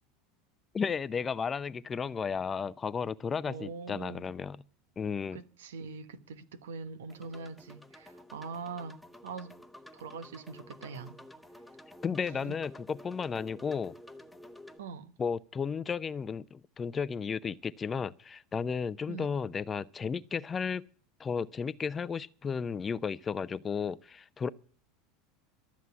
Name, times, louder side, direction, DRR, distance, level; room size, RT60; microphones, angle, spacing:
voice 1, 0.7-4.6 5.0-5.4 12.0-14.0 15.2-20.8 21.2-24.5, left 6 dB, 25° left, 0.6 m, -33 dB
voice 2, 3.4-4.3 5.3-9.6 9.9-11.2 12.3-12.6 14.8-15.1 19.1-19.3, right 5 dB, 80° right, 1.1 m, -43 dB
sound 1, 7.1-14.8, left 1 dB, 5° left, 1.0 m, -51 dB
13.0 x 7.3 x 9.5 m
hypercardioid pair, 90°, 0 cm